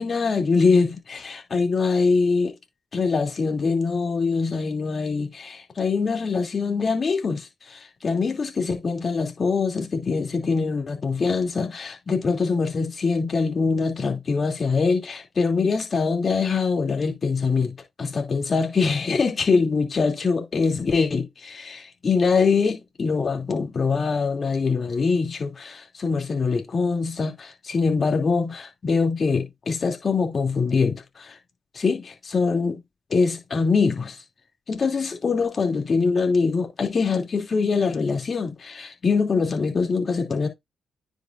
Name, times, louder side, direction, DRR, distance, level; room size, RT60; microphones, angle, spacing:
voice 1, 0.0-2.5 2.9-17.7 18.1-31.4 31.7-32.8 33.1-34.2 34.7-40.5, left 4 dB, 55° left, 2.8 m, -23 dB
9.6 x 5.1 x 2.5 m
supercardioid pair, 45°, 0 cm